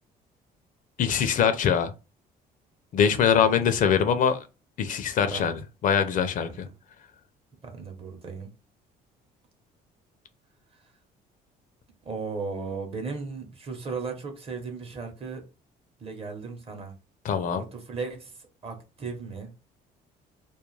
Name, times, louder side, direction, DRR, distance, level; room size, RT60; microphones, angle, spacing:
voice 1, 1.0-1.9 2.9-4.4 4.8-6.7 17.2-17.6, left 7 dB, 50° left, 0.4 m, -23 dB
voice 2, 7.6-8.5 12.0-15.4 16.0-16.9 17.5-18.4 18.6-19.5, right 4 dB, 35° right, 0.8 m, -36 dB
2.3 x 2.1 x 3.1 m
cardioid pair, 110°, 17 cm